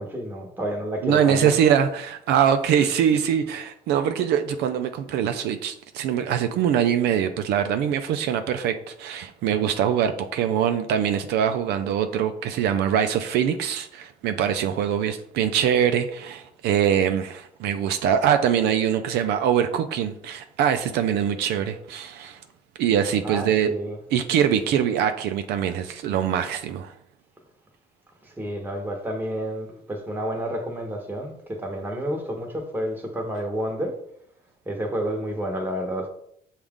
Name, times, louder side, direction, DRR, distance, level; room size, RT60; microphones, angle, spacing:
voice 1, 0.0-1.5 23.2-24.0 28.2-33.9 34.7-36.1, equal, 10° right, 1 dB, 1.0 m, -30 dB
voice 2, 1.0-22.4 22.8-23.7 24.1-26.9, right 9 dB, 80° right, 8 dB, 0.4 m, -23 dB
6.2 x 2.4 x 3.5 m, 0.71 s
cardioid pair, 110°, 17 cm